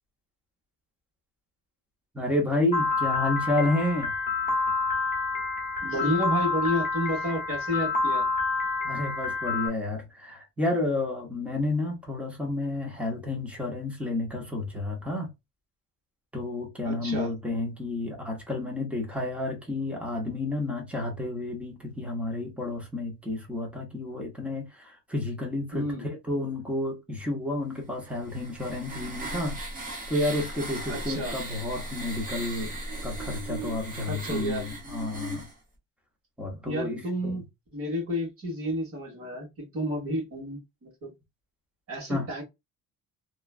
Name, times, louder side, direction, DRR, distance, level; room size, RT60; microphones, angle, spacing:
voice 1, 2.1-4.1 8.8-15.3 16.3-29.6 30.1-32.8 33.0-35.4 36.4-37.3 42.1-42.3, left 2 dB, 5° right, 0.7 m, -30 dB
Piano, 2.7-9.7, left 4 dB, 25° left, 0.8 m, -28 dB
voice 2, 5.8-8.2 16.8-17.3 25.7-26.0 30.9-31.4 34.1-34.7 36.6-37.4 37.7-41.1 41.9-42.4, equal, 40° right, 1.6 m, -31 dB
sound 1, 28.0-35.5, right 1 dB, 25° right, 1.0 m, -37 dB
3.0 x 2.3 x 2.4 m
cardioid pair, 175°, 34 cm